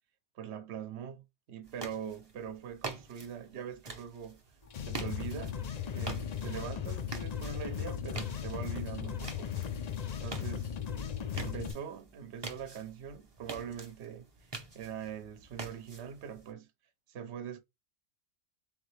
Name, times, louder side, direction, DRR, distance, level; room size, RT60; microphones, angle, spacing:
voice 1, 0.3-4.4 4.9-5.6 5.9-9.6 10.2-10.7 11.3-14.3 14.7-16.7 17.1-17.6, right 8 dB, 60° right, 1.0 m, -42 dB
sound 1, 1.6-16.5, right 3 dB, 25° right, 0.7 m, -47 dB
sound 2, 4.7-11.7, left 8 dB, 70° left, 0.4 m, -37 dB
3.8 x 3.5 x 3.3 m
omnidirectional pair, 1.4 m